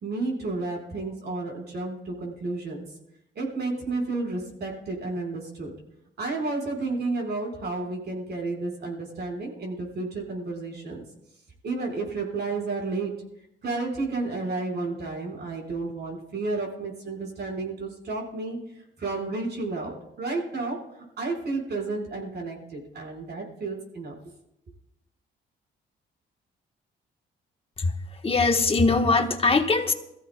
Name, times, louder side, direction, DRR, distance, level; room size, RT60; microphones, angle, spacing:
voice 1, 0.0-2.9 3.3-5.7 6.2-11.0 11.6-13.1 13.6-24.1, right 3 dB, 55° right, 0 dB, 4.7 m, -31 dB
voice 2, 28.2-29.9, left 3 dB, 30° left, 5 dB, 1.3 m, -21 dB
22.5 x 15.0 x 2.3 m, 0.84 s
cardioid pair, 95°, 20 cm